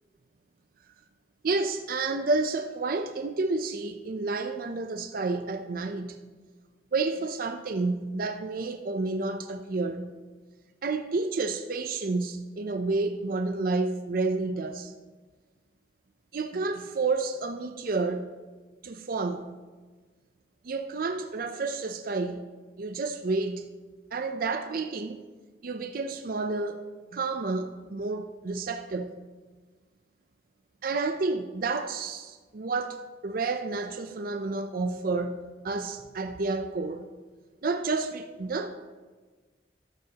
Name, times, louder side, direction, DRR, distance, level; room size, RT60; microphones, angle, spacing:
voice 1, 1.4-6.2 6.9-10.1 10.8-14.9 16.3-18.3 18.8-19.5 20.6-22.4 22.8-23.6 24.1-25.2 25.6-26.8 27.1-29.2 30.8-37.1 37.6-38.9, right 3 dB, 55° right, 0.5 m, -30 dB
13.5 x 12.0 x 2.9 m
head